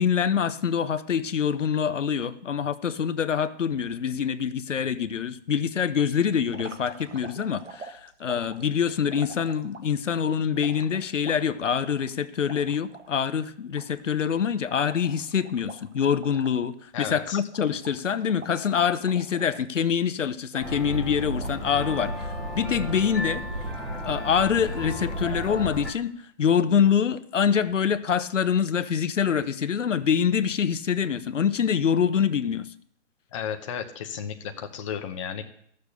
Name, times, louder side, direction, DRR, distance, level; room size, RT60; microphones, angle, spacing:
voice 1, 0.0-23.4 24.0-26.1 26.4-32.7, left 7 dB, 85° left, 11 dB, 1.0 m, -25 dB
sound 1, 6.5-10.0 10.6-13.1 13.4-13.5 13.8-16.7 17.0-17.2 17.5-20.0 20.5-21.0 21.4-22.1 22.6-23.2 23.6-24.1, right 4 dB, 85° right, 1.7 m, -46 dB
voice 2, 16.9-17.4 33.3-35.4, left 8 dB, 25° left, 5 dB, 1.0 m, -33 dB
sound 2, 20.6-25.9, equal, ahead, 0.8 m, -33 dB
14.5 x 6.8 x 6.9 m, 0.67 s
hypercardioid pair, 160°, 36 cm